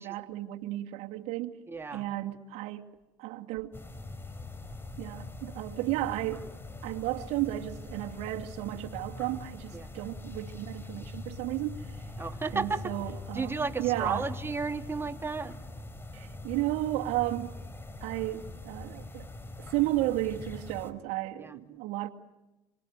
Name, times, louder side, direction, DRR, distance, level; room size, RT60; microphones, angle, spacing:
voice 1, 0.0-1.5 1.9-2.9 3.2-3.8 5.0-6.5 6.8-12.1 12.5-14.3 16.1-17.5 18.0-19.3 19.6-22.1, right 16 dB, 75° right, 2.3 m, -33 dB
voice 2, 1.7-2.1 9.7-9.9 12.2-12.9 13.3-15.6 21.4-21.6, right 4 dB, 20° right, 2.8 m, -33 dB
sound 1, 3.7-20.9, left 2 dB, 20° left, 4.1 m, -43 dB
28.0 x 25.0 x 8.1 m
supercardioid pair, 85°, 11 cm